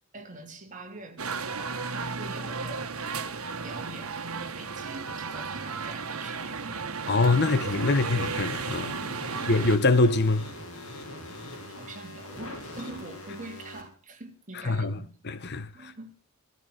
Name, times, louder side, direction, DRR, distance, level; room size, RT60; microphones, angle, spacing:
voice 1, 0.1-1.2 1.5-2.9 3.6-7.2 11.7-15.1 15.7-16.1, right 2 dB, 35° right, 3.0 m, -44 dB
sound 1, 1.2-9.8, right 5 dB, 90° right, 1.7 m, -34 dB
voice 2, 7.1-9.0 9.5-10.4 14.6-15.0 15.2-15.9, left 3 dB, 50° left, 1.0 m, -24 dB
sound 2, 7.2-13.8, left 1 dB, 75° left, 7.0 m, -42 dB
15.5 x 14.5 x 6.4 m
head